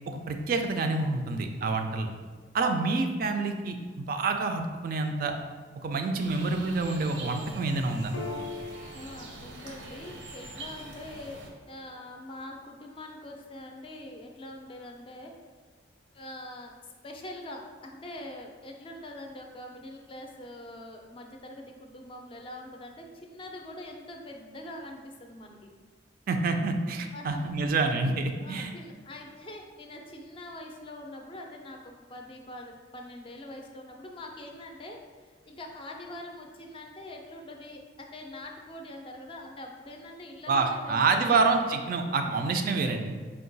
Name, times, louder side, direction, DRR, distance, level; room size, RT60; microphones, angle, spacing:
voice 1, 0.1-2.1 2.5-5.3 5.8-8.1 26.3-28.7 40.5-43.1, right 3 dB, 50° right, 5 dB, 0.3 m, -27 dB
sound 1, 6.2-11.5, right 2 dB, 85° right, 0.6 m, -44 dB
Piano, 8.1-15.0, left 3 dB, 90° left, 0.5 m, -46 dB
voice 2, 8.9-15.3 16.1-25.7 27.1-27.7 28.4-41.7 42.2-42.4, left 1 dB, 30° left, 2 dB, 0.4 m, -44 dB
4.5 x 2.2 x 3.9 m, 1.5 s
head